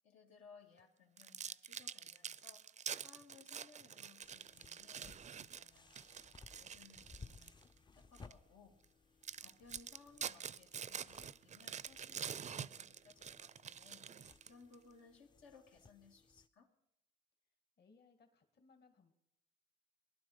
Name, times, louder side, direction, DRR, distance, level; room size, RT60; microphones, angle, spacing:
voice 1, 0.0-2.7 3.0-6.2 6.5-7.5 7.9-8.8 9.4-16.7, left 5 dB, 90° left, 0 dB, 2.3 m, -63 dB
sound 1, 1.2-7.6 8.1-8.3 8.8-8.9 9.2-14.7, right 7 dB, 35° right, 0.5 m, -47 dB
sound 2, 4.2-16.5, left 4 dB, 25° left, 0.5 m, -62 dB
voice 2, 17.8-19.1, left 4 dB, 55° left, 5 dB, 2.0 m, -67 dB
19.5 x 11.5 x 5.0 m, 0.81 s
cardioid pair, 90°, 20 cm